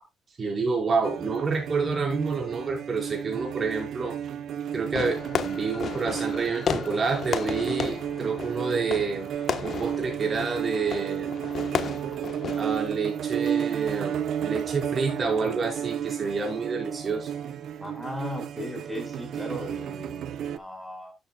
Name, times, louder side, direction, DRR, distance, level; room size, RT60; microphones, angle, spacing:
voice 1, 0.4-4.2 4.7-5.2 5.4-9.3 9.6-11.4 12.6-17.3, right 4 dB, 40° right, 5.7 m, -28 dB
sound 1, 1.0-20.6, right 9 dB, 70° right, 0.9 m, -33 dB
Fireworks, 4.9-13.0, left 7 dB, 55° left, 1.4 m, -33 dB
voice 2, 17.8-21.1, left 1 dB, ahead, 5.4 m, -37 dB
12.5 x 9.1 x 2.4 m
cardioid pair, 90°, 0 cm